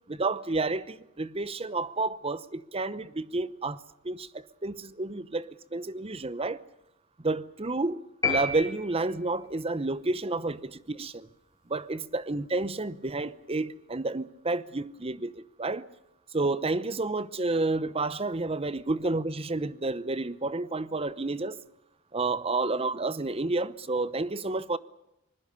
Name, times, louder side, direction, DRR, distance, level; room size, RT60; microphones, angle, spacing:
voice 1, 0.1-6.6 7.2-11.3 11.7-15.9 16.3-21.6 22.1-24.8, right 3 dB, 25° right, 0.8 m, -30 dB
sound 1, 8.2-9.5, left 3 dB, 15° left, 7.1 m, -30 dB
25.0 x 20.5 x 6.9 m
head